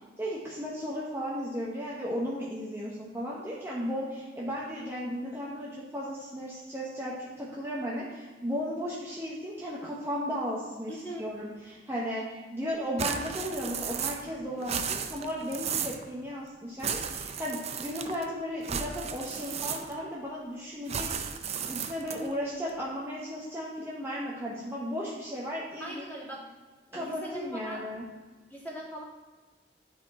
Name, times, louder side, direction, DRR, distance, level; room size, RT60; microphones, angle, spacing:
voice 1, 0.2-12.2 12.5-26.1 26.9-28.1, equal, 15° right, -6 dB, 1.0 m, -35 dB
voice 2, 10.9-11.3 25.8-26.4 26.9-27.9 28.5-29.0, equal, 10° left, -6 dB, 2.3 m, -40 dB
sound 1, 13.0-14.3 14.6-16.0 16.8-18.3 18.6-20.1 20.9-22.3, right 7 dB, 35° right, 0.5 m, -34 dB
10.0 x 4.3 x 4.3 m, 1.3 s
head